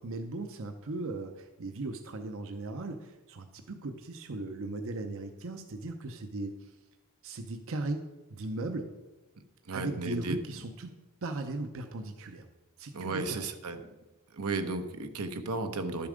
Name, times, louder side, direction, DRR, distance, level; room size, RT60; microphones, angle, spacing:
voice 1, 0.0-6.7 7.2-8.0 8.3-8.9 9.7-10.9 11.2-12.5 12.8-13.4, right 2 dB, 60° right, 6 dB, 0.7 m, -37 dB
voice 2, 9.6-10.4 12.9-13.8 14.3-16.1, right 3 dB, 85° right, 7 dB, 0.9 m, -34 dB
11.5 x 7.0 x 5.0 m, 1.1 s
head